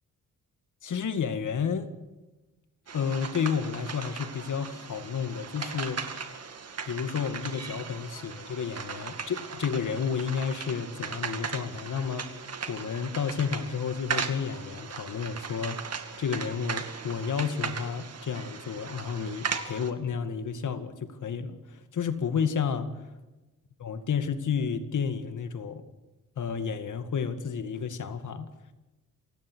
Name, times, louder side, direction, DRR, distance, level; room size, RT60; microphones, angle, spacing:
voice 1, 0.8-1.9 2.9-6.0 6.9-15.8 16.2-22.9 23.8-25.8 26.4-28.5, left 6 dB, 70° left, 9 dB, 2.1 m, -31 dB
sound 1, 2.9-19.9, right 6 dB, 50° right, 2.2 m, -38 dB
28.5 x 16.5 x 6.3 m, 1.1 s
cardioid pair, 95°, 32 cm